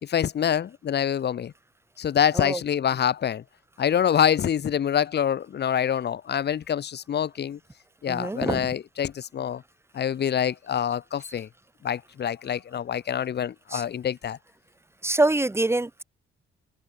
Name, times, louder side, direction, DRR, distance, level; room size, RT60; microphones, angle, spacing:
voice 1, 0.0-1.5 2.0-3.4 3.8-7.6 8.0-9.6 9.9-11.5 11.8-14.4, left 9 dB, 55° left, 2.8 m, -26 dB
voice 2, 8.1-8.7 13.7-13.8 15.0-16.0, right 2 dB, 15° right, 2.6 m, -25 dB
open air
cardioid pair, 90°, 20 cm